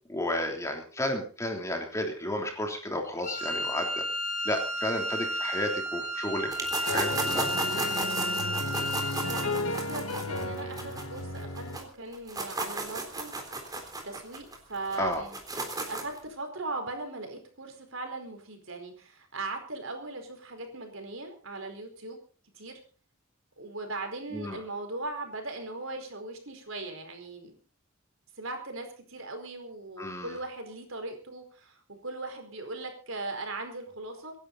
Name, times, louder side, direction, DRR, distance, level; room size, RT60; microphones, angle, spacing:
voice 1, 0.1-4.0 4.4-7.5 15.0-15.2 24.3-24.6 30.0-30.4, left 1 dB, 15° left, 3 dB, 3.2 m, -32 dB
Wind instrument woodwind instrument, 3.2-9.6, equal, 40° left, 2.4 m, -32 dB
sound 1, 6.5-11.8 12.1-16.2, right 2 dB, 20° right, 3.7 m, -35 dB
sound 2, 6.6-11.8, left 2 dB, 85° left, 1.7 m, -34 dB
voice 2, 8.4-8.8 9.2-13.3 13.6-15.4 15.7-22.2 22.5-22.7 23.6-27.6 28.4-34.3, right 2 dB, 65° right, 4 dB, 4.8 m, -39 dB
25.0 x 11.5 x 4.1 m, 0.38 s
head